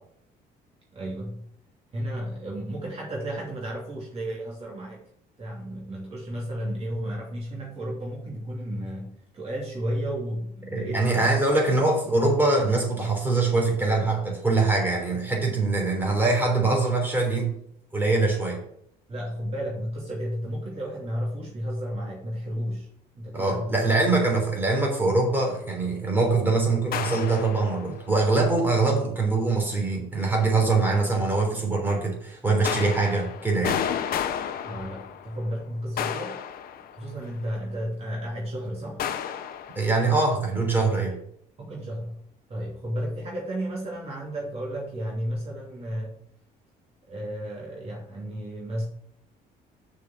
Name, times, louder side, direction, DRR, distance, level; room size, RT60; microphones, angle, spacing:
voice 1, 0.9-1.5 1.9-5.0 5.4-11.3 11.6-11.7 19.1-22.9 23.1-23.8 24.2-24.3 34.6-36.4 36.9-39.0 41.6-42.2 42.5-46.1 47.1-48.8, equal, 35° right, -3 dB, 2.7 m, -33 dB
voice 2, 10.7-17.5 17.9-18.6 23.3-33.8 39.8-41.2, right 3 dB, 10° right, -1 dB, 3.5 m, -23 dB
sound 1, 26.9-28.0 32.6-35.5 36.0-37.3 39.0-39.9, left 9 dB, 60° left, 0.9 m, -31 dB
6.5 x 5.3 x 7.2 m, 0.69 s
cardioid pair, 110°, 17 cm